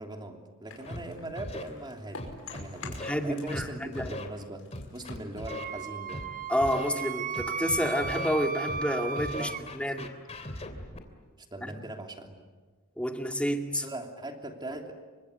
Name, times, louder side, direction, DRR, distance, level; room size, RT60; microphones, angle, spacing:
voice 1, 0.0-2.2 2.5-4.7 4.9-6.2 9.4-9.6 10.0-10.4 11.4-12.5 13.7-14.9, right 1 dB, 20° right, 3 dB, 3.0 m, -41 dB
sound 1, 0.7-3.6 3.9-6.3, left 4 dB, 70° left, 5.8 m, -47 dB
Scratching (performance technique), 0.9-1.0 1.3-1.6 2.2-3.1 3.5-3.6 3.9-4.3 4.7-5.6 6.1-6.2 6.6-6.9 7.3-8.3 8.7-8.8 9.1-11.0, left 1 dB, 30° left, 3.0 m, -38 dB
voice 2, 3.0-4.1 6.5-10.1 11.6-11.7 13.0-13.8, equal, 5° left, 4 dB, 2.1 m, -29 dB
Wind instrument woodwind instrument, 5.5-9.6, right 5 dB, 40° right, 1.0 m, -35 dB
29.0 x 25.0 x 8.3 m, 1.4 s
head